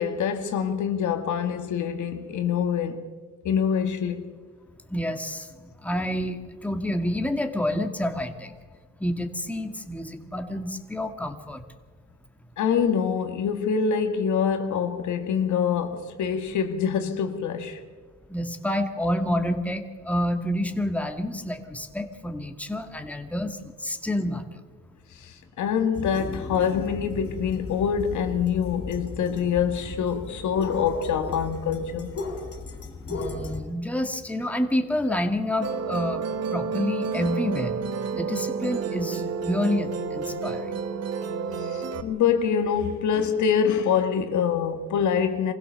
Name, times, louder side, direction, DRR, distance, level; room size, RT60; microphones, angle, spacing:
voice 1, 0.0-3.1 3.5-4.3 12.6-17.8 25.2-32.2 41.6-45.5, left 7 dB, 75° left, 1.8 m, -25 dB
voice 2, 4.9-8.5 9.0-11.6 18.3-24.6 33.1-36.2 36.5-37.8 38.1-40.7, left 1 dB, 5° left, 1.8 m, -28 dB
sound 1, 25.9-33.6, left 3 dB, 50° left, 3.5 m, -36 dB
Musical instrument, 35.6-42.0, right 5 dB, 55° right, 1.4 m, -30 dB
24.5 x 16.0 x 6.8 m
cardioid pair, 90°, 30 cm